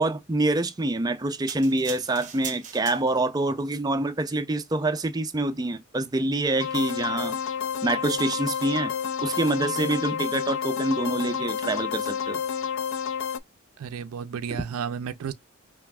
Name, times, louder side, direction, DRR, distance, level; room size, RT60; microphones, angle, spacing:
voice 1, 0.0-7.4 7.8-8.9 9.2-12.4, right 2 dB, 20° right, 0.4 m, -26 dB
sound 1, 1.5-3.4 4.1-4.2, right 8 dB, 35° right, 0.8 m, -39 dB
sound 2, 6.6-13.4, left 7 dB, 65° left, 0.3 m, -30 dB
voice 2, 13.8-15.3, right 7 dB, 85° right, 0.4 m, -32 dB
5.6 x 2.4 x 2.3 m
head